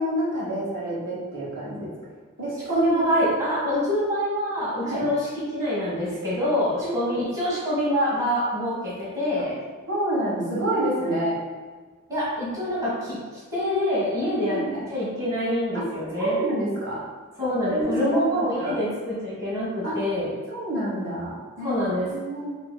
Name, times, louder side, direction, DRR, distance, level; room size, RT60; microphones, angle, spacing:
voice 1, 0.0-1.9 2.4-3.1 4.8-5.1 6.8-7.1 9.9-11.4 12.5-12.6 14.5-14.8 16.1-17.0 17.7-18.8 19.8-20.0 20.5-22.5, right 1 dB, 65° right, -6 dB, 1.1 m, -28 dB
voice 2, 2.7-9.5 12.1-14.6 14.9-16.4 17.4-20.3 21.6-22.1, equal, 15° right, -8 dB, 1.1 m, -25 dB
4.7 x 2.8 x 2.3 m, 1.4 s
head